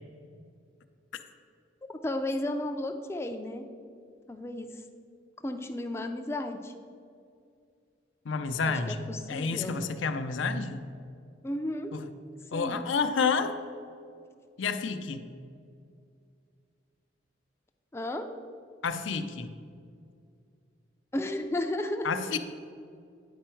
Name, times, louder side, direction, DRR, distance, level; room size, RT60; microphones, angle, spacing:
voice 1, 2.0-3.6 4.3-4.8 5.4-6.7 8.6-9.8 11.4-11.9 12.5-12.9 17.9-18.3 21.1-22.1, left 1 dB, 15° left, 5 dB, 0.3 m, -33 dB
voice 2, 8.2-10.9 11.9-12.1 12.5-13.6 14.6-15.3 18.8-19.5 22.0-22.4, left 5 dB, 85° left, 8 dB, 0.5 m, -30 dB
9.4 x 4.6 x 4.4 m, 2.3 s
head